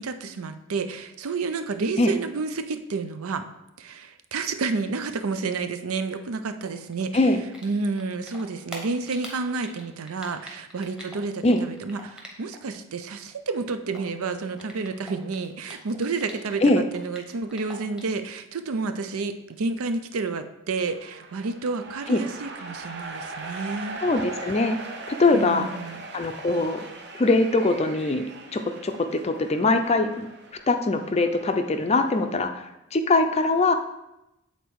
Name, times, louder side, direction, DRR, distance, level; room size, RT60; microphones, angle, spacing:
voice 1, 0.0-3.5 3.8-7.2 7.6-24.0 25.3-26.0, right 4 dB, 85° right, 9 dB, 0.5 m, -30 dB
Typing, 6.6-8.0 8.3-12.7 13.0-16.6 16.9-18.2, equal, 5° right, 0.9 m, -44 dB
sound 1, 20.8-32.4, right 3 dB, 50° right, 0.7 m, -40 dB
voice 2, 24.0-24.8 25.1-25.7 26.1-26.9 27.1-28.3 28.5-30.3 30.7-32.6 32.9-33.7, left 2 dB, 30° left, 7 dB, 0.4 m, -22 dB
8.1 x 3.9 x 4.6 m, 0.93 s
head